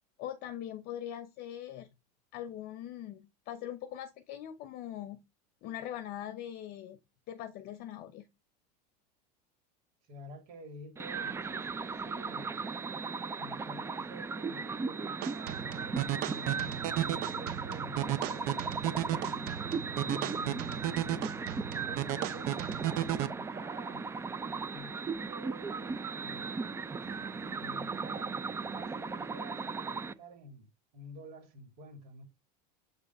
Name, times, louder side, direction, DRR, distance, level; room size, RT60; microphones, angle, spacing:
voice 1, 0.2-1.9 2.3-5.2 5.6-7.0 7.3-8.3, left 11 dB, 45° left, 0.7 m, -41 dB
voice 2, 10.0-12.6 13.4-18.6 19.1-21.4 21.9-24.1 24.7-26.8 27.6-32.2, right 1 dB, 65° right, 3.3 m, -50 dB
sound 1, 11.0-30.1, right 4 dB, 10° right, 0.4 m, -37 dB
sound 2, 15.2-23.3, right 13 dB, 50° right, 0.6 m, -34 dB
sound 3, 25.7-29.0, right 7 dB, 30° right, 1.2 m, -51 dB
7.4 x 3.3 x 4.1 m
supercardioid pair, 120°, 21 cm